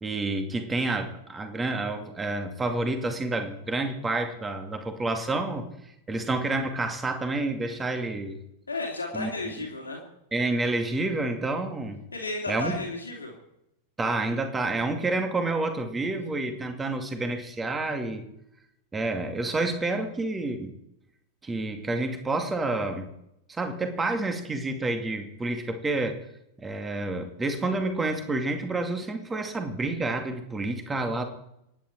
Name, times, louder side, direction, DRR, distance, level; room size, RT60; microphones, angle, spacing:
voice 1, 0.0-5.7 6.1-8.4 9.1-9.3 10.3-12.0 12.5-12.7 14.0-18.2 18.9-20.7 21.4-23.1 23.5-26.2 26.6-31.2, right 2 dB, 15° right, 6 dB, 2.4 m, -29 dB
voice 2, 8.7-10.0 12.1-13.3, left 3 dB, 75° left, 0 dB, 2.7 m, -33 dB
26.0 x 10.5 x 4.6 m, 0.83 s
figure-of-eight pair, 90°, 0 cm